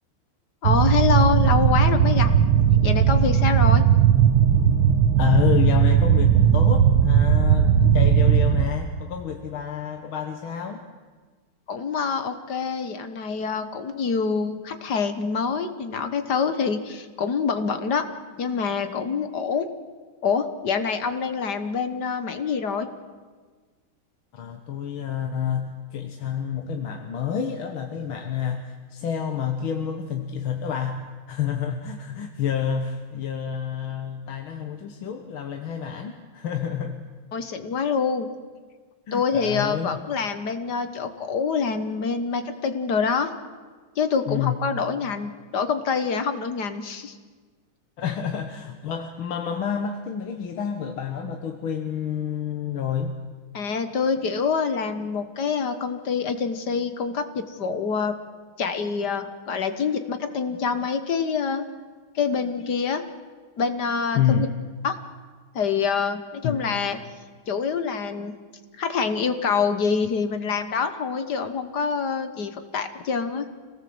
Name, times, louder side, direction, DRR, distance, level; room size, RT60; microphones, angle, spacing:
voice 1, 0.6-2.3 2.8-3.8 11.7-18.0 18.4-19.7 20.2-22.9 37.3-38.3 39.1-43.3 44.0-47.2 53.5-58.1 58.6-61.6 62.2-63.0 63.6-64.5 64.8-65.0 65.6-67.0 67.5-68.3 68.8-73.5, left 5 dB, 55° left, 9 dB, 1.7 m, -26 dB
sound 1, 0.6-8.7, right 8 dB, 70° right, 1.9 m, -18 dB
voice 2, 5.2-10.8 24.3-37.0 39.1-40.0 44.3-44.6 48.0-53.2 64.1-64.5 66.4-66.6, left 8 dB, 70° left, 5 dB, 2.0 m, -28 dB
26.0 x 18.0 x 7.9 m, 1.5 s
omnidirectional pair, 2.3 m